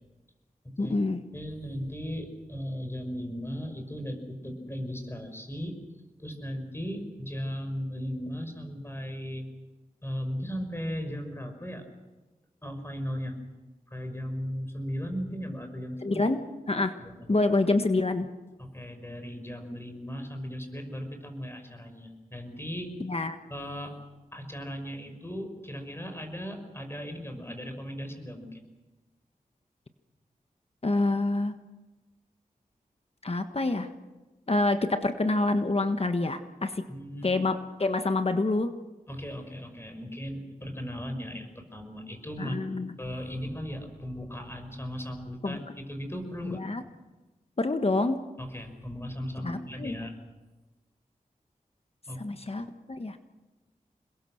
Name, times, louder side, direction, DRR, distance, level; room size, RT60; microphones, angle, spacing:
voice 1, 0.8-1.2 16.0-16.4 16.7-16.9 17.3-18.3 23.0-23.4 30.8-31.6 33.2-33.9 34.5-36.9 37.2-38.7 42.4-42.9 45.4-45.6 46.4-46.8 47.6-48.2 49.4-49.9 52.2-53.2, left 2 dB, 45° left, 7 dB, 1.5 m, -27 dB
voice 2, 1.3-5.7 6.2-9.4 10.0-11.8 12.6-13.4 13.9-16.2 17.0-17.4 18.6-22.9 23.5-24.0 24.3-28.6 36.9-37.3 39.1-42.6 43.0-46.6 48.4-50.1 52.1-52.2, equal, 15° left, 6 dB, 5.8 m, -37 dB
27.5 x 21.5 x 6.6 m, 1.1 s
cardioid pair, 55°, 14 cm